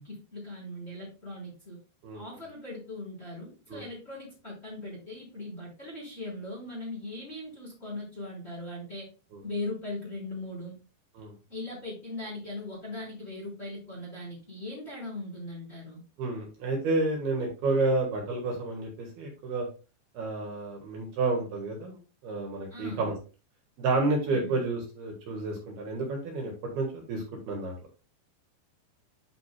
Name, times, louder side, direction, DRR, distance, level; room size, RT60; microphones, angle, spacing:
voice 1, 0.0-1.8 2.1-9.1 9.4-10.8 11.5-16.0 22.7-23.1 24.3-24.6, left 2 dB, 15° left, -5 dB, 3.5 m, -39 dB
voice 2, 16.2-19.7 20.1-21.9 22.2-23.1 23.8-27.7, right 3 dB, 65° right, 0 dB, 3.2 m, -30 dB
11.0 x 5.2 x 2.3 m, 0.33 s
omnidirectional pair, 5.2 m